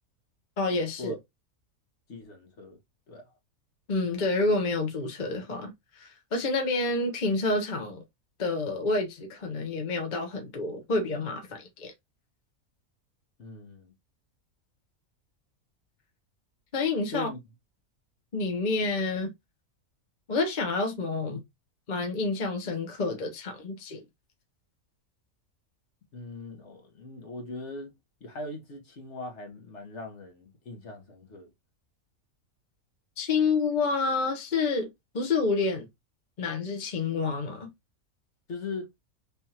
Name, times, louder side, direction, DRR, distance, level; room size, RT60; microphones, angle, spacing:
voice 1, 0.6-1.2 3.9-8.0 8.4-11.9 16.7-17.3 18.3-19.3 20.3-21.4 21.9-24.0 33.2-34.9 35.1-35.9 36.4-37.7, left 3 dB, 35° left, 1.0 m, -28 dB
voice 2, 2.1-2.8 3.1-3.3 13.4-13.9 17.1-17.4 26.1-27.9 28.2-31.5 38.5-38.9, left 2 dB, 55° left, 1.4 m, -40 dB
3.4 x 3.4 x 2.8 m
omnidirectional pair, 1.5 m